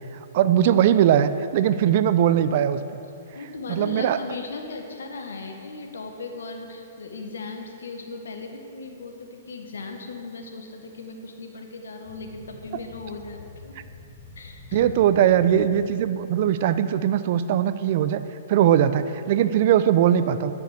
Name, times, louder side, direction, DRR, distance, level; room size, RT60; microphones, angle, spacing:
voice 1, 0.3-3.0 3.7-4.2 14.7-18.2 18.5-20.6, right 10 dB, 50° right, 13 dB, 0.6 m, -20 dB
voice 2, 3.3-13.8 14.4-14.9, left 3 dB, 75° left, 4 dB, 1.7 m, -37 dB
sound 1, 12.0-16.3, left 2 dB, 40° left, 2.7 m, -46 dB
11.5 x 9.9 x 6.7 m, 2.6 s
figure-of-eight pair, 115°, 0 cm